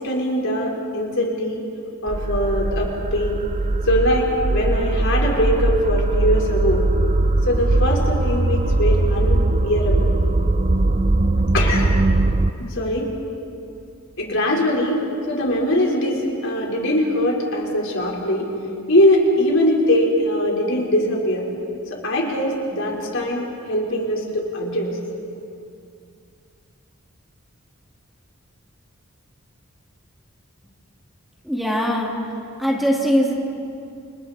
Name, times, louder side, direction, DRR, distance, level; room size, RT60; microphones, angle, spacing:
voice 1, 0.0-1.6 2.0-3.4 3.9-6.9 7.4-10.1 11.5-11.9 12.6-13.1 14.2-15.0 15.3-18.5 18.9-21.4 21.9-25.0, equal, 60° left, -2 dB, 4.7 m, -21 dB
sound 1, 2.1-12.5, right 2 dB, 30° right, 0.6 m, -20 dB
voice 2, 31.4-32.1 32.6-33.3, equal, ahead, -3 dB, 2.7 m, -20 dB
29.0 x 28.5 x 4.4 m, 2.6 s
head